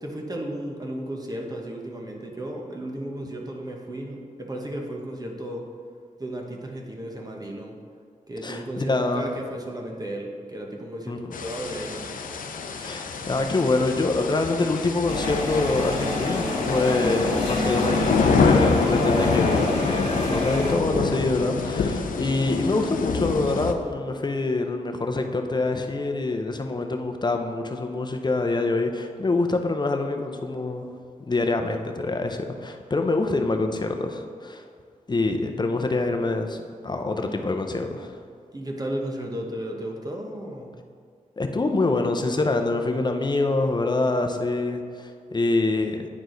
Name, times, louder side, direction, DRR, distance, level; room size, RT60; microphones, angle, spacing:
voice 1, 0.0-5.7 6.2-7.8 8.3-12.2 35.3-35.4 38.5-40.8, right 1 dB, 30° right, 0 dB, 1.1 m, -34 dB
voice 2, 8.4-9.3 11.1-11.3 12.8-30.9 31.3-34.6 35.1-38.2 41.4-46.1, left 2 dB, 30° left, 5 dB, 0.7 m, -25 dB
sound 1, 11.3-23.7, left 5 dB, 80° left, 0.5 m, -26 dB
sound 2, 15.1-20.7, left 1 dB, 50° left, 1.9 m, -27 dB
9.5 x 4.6 x 3.9 m, 2.1 s
wide cardioid pair, 80°, 14 cm